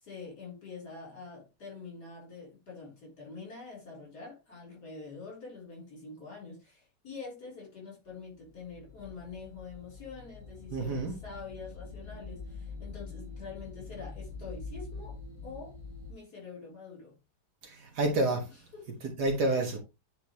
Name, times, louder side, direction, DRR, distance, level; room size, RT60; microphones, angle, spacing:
voice 1, 0.0-15.2 15.4-15.8 16.1-17.1 18.5-18.9 19.5-19.8, left 4 dB, 65° left, 4.4 m, -46 dB
sound 1, 8.4-16.1, left 3 dB, 45° left, 2.8 m, -45 dB
voice 2, 10.7-11.2 17.6-18.4 19.2-19.8, right 2 dB, 65° right, 2.1 m, -28 dB
9.5 x 4.1 x 3.1 m
omnidirectional pair, 1.9 m